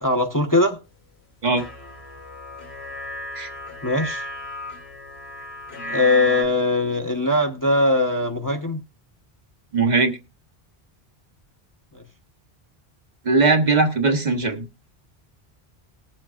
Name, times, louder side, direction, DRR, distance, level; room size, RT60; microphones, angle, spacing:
voice 1, 0.0-0.8 3.8-4.3 5.9-8.8 11.9-12.0, left 2 dB, 20° left, 0.9 m, -21 dB
sound 1, 1.6-6.4, left 1 dB, 90° left, 2.1 m, -33 dB
voice 2, 9.7-10.2 13.2-14.7, right 3 dB, 45° right, 1.2 m, -19 dB
19.5 x 7.6 x 2.4 m
omnidirectional pair, 1.0 m